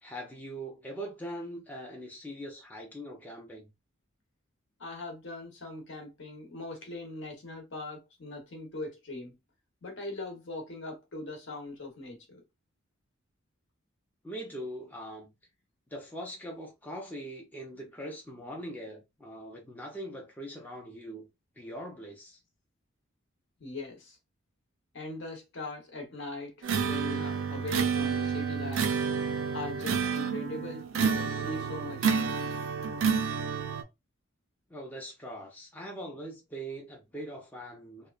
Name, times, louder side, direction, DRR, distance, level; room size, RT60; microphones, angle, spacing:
voice 1, 0.0-3.7 14.2-15.3 15.9-21.3 21.6-22.4 34.7-38.1, right 1 dB, 10° left, 0.5 m, -41 dB
voice 2, 4.8-9.3 9.8-12.4 23.6-24.2 24.9-29.0 29.5-32.4, left 2 dB, 60° left, 0.9 m, -41 dB
sound 1, 26.6-33.8, right 6 dB, 70° right, 0.4 m, -29 dB
2.8 x 2.2 x 2.3 m
head